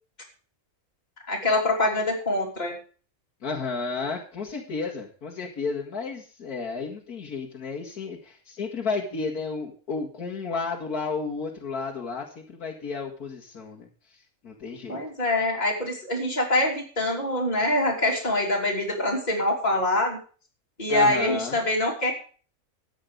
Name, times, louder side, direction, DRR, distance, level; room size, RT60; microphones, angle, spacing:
voice 1, 1.3-2.8 14.9-20.2 20.8-22.1, left 1 dB, 30° left, -3 dB, 3.5 m, -24 dB
voice 2, 3.4-15.0 20.9-21.6, left 4 dB, 80° left, -2 dB, 2.5 m, -32 dB
13.5 x 9.0 x 5.2 m, 0.39 s
omnidirectional pair, 1.6 m